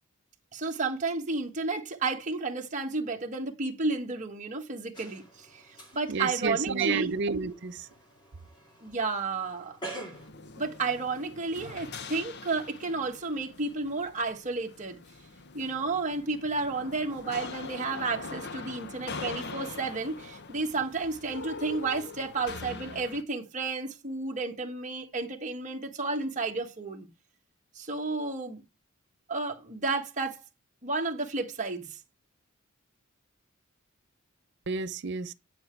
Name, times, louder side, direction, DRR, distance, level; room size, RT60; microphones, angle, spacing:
voice 1, 0.5-7.1 8.8-9.8 10.6-15.0 15.5-27.1 27.7-28.6 29.3-30.4 30.8-32.0, right 3 dB, 35° right, 1.4 m, -32 dB
sound 1, 4.9-10.3, right 2 dB, 20° left, 2.2 m, -46 dB
voice 2, 6.1-7.9 34.7-35.3, right 5 dB, 55° right, 0.7 m, -30 dB
sound 2, 10.1-23.2, left 4 dB, 50° left, 0.8 m, -43 dB
10.0 x 6.0 x 4.5 m
head